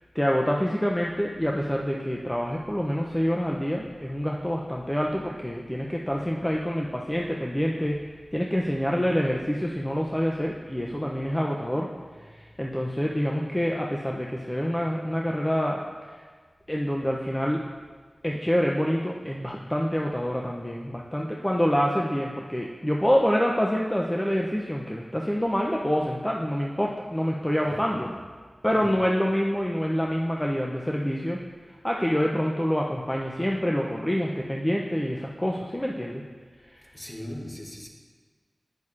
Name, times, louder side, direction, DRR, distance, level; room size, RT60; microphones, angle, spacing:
voice 1, 0.1-8.0 8.3-11.9 12.3-15.8 16.1-16.2 16.7-17.6 18.2-28.1 28.6-31.4 31.8-36.2 36.7-36.9, equal, 10° left, -1 dB, 0.5 m, -26 dB
voice 2, 27.6-28.1 28.7-29.0 36.9-37.9, left 1 dB, 30° left, 0 dB, 1.0 m, -39 dB
8.3 x 6.3 x 2.4 m, 1.5 s
wide cardioid pair, 65°, 0 cm